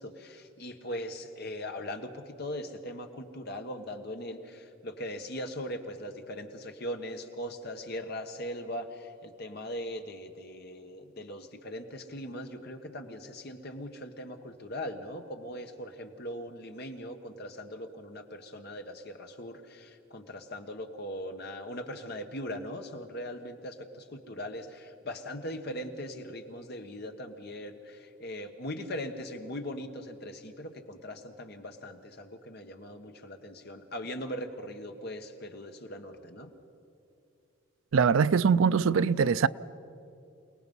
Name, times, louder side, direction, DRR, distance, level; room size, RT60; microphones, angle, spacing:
voice 1, 0.0-36.5, left 1 dB, 50° left, 1.4 m, -40 dB
voice 2, 37.9-39.5, right 6 dB, 75° right, 0.4 m, -22 dB
28.5 x 18.5 x 5.5 m
head